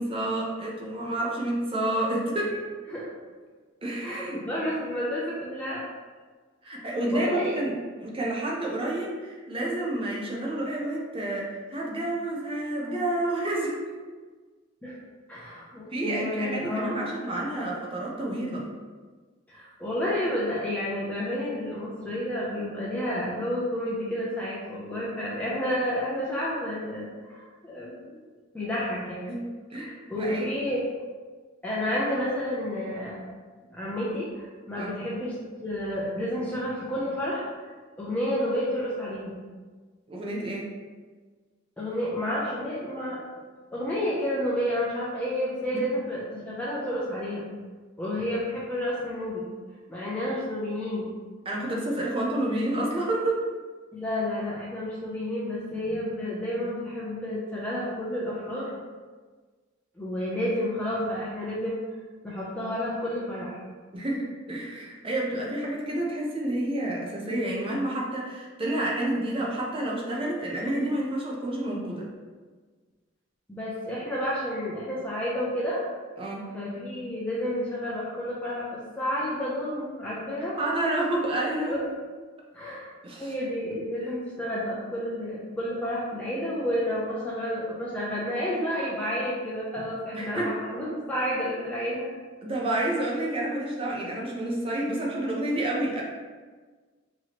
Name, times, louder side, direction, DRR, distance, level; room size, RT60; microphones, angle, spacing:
voice 1, 0.0-2.6 3.8-4.4 6.6-14.0 15.9-18.7 29.2-29.4 29.7-30.6 34.7-35.0 40.1-40.7 51.4-53.4 63.9-72.1 76.2-76.5 80.6-81.8 83.0-83.3 90.1-90.5 92.4-96.0, right 1 dB, 30° right, -3 dB, 0.7 m, -29 dB
voice 2, 4.0-5.8 6.8-6.9 7.1-7.5 14.8-15.0 15.3-17.1 19.5-28.2 28.5-29.3 30.1-30.8 31.6-33.2 33.5-35.3 35.6-37.7 38.0-39.3 41.8-43.2 43.7-47.4 48.0-49.5 49.9-51.1 53.9-58.7 60.0-61.8 62.2-63.6 73.5-75.8 76.5-80.6 81.3-81.8 82.5-82.9 83.2-92.1, left 1 dB, 5° left, -8 dB, 0.6 m, -30 dB
4.5 x 3.0 x 2.9 m, 1.4 s
head